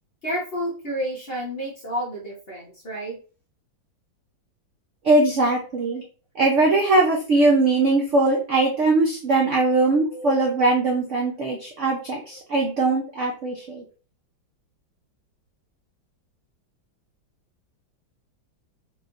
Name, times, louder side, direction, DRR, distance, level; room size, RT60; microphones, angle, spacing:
voice 1, 0.2-3.2 10.1-10.4, equal, 45° left, -3 dB, 0.8 m, -30 dB
voice 2, 5.0-6.0 6.4-13.8, right 2 dB, 65° right, 0 dB, 0.7 m, -21 dB
4.5 x 3.1 x 2.5 m, 0.38 s
omnidirectional pair, 2.1 m